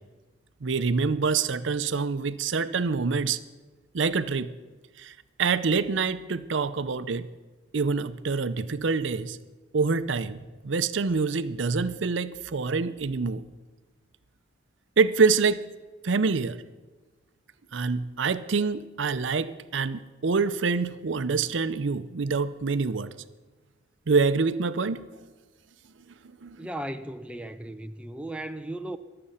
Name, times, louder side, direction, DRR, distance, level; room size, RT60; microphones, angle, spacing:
voice 1, 0.6-3.4 3.9-4.5 5.0-5.1 5.4-7.3 7.7-9.4 9.7-13.4 15.0-15.6 16.0-16.6 17.7-23.1 24.1-25.0 26.4-26.7, right 4 dB, 65° right, 0.6 m, -26 dB
voice 2, 26.6-29.0, right 1 dB, 5° right, 0.4 m, -36 dB
22.5 x 7.7 x 5.7 m
head